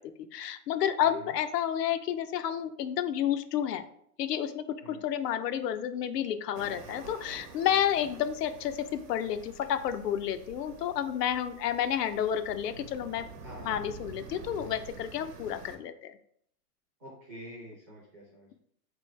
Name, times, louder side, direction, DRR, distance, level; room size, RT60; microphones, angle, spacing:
voice 1, 0.3-3.8 4.2-13.3 13.6-16.1, left 10 dB, 85° left, 10 dB, 0.6 m, -30 dB
voice 2, 1.0-1.3 4.8-5.0 13.4-13.8 17.0-18.5, equal, 10° right, -9 dB, 0.4 m, -47 dB
sound 1, 6.5-15.8, right 5 dB, 90° right, 0.9 m, -48 dB
3.7 x 3.1 x 3.1 m, 0.67 s
supercardioid pair, 170°, 47 cm